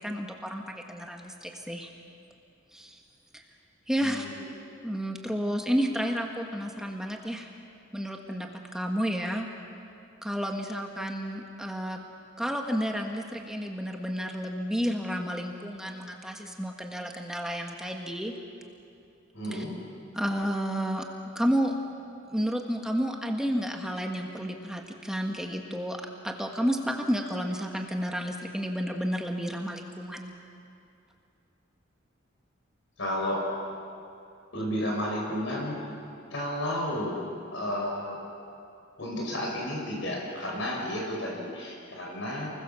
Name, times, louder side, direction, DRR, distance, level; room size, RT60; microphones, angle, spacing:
voice 1, 0.0-1.9 2.7-3.0 3.3-3.4 3.9-4.2 4.8-7.5 7.9-9.5 10.2-12.0 12.4-18.3 19.5-19.6 20.1-21.1 21.3-21.7 22.3-30.3, equal, 5° right, 2 dB, 1.5 m, -31 dB
voice 2, 4.0-4.4 19.3-19.8 33.0-33.5 34.5-35.8 36.3-37.2 37.5-38.2 39.0-42.5, equal, 65° left, -2 dB, 5.6 m, -32 dB
29.0 x 21.0 x 7.0 m, 2.6 s
head